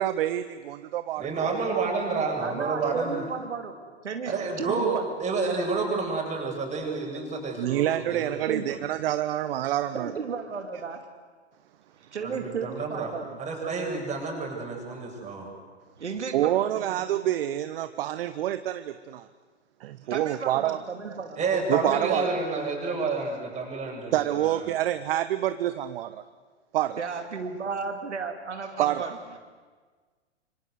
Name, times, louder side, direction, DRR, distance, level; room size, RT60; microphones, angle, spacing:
voice 1, 0.0-1.5 7.6-10.1 16.3-19.3 19.8-20.8 21.7-22.3 24.1-26.2 26.7-27.0 28.8-29.0, right 13 dB, 55° right, 12 dB, 1.1 m, -27 dB
voice 2, 1.2-3.2 4.3-8.3 12.2-13.1 13.4-15.5 21.4-24.6, right 4 dB, 20° right, 0 dB, 7.5 m, -29 dB
voice 3, 2.4-5.0 8.5-8.9 9.9-11.1 12.0-13.4 16.0-17.0 20.0-21.4 27.0-29.4, right 5 dB, 80° right, 6 dB, 2.5 m, -34 dB
26.5 x 25.5 x 8.1 m, 1.5 s
figure-of-eight pair, 110°, 34 cm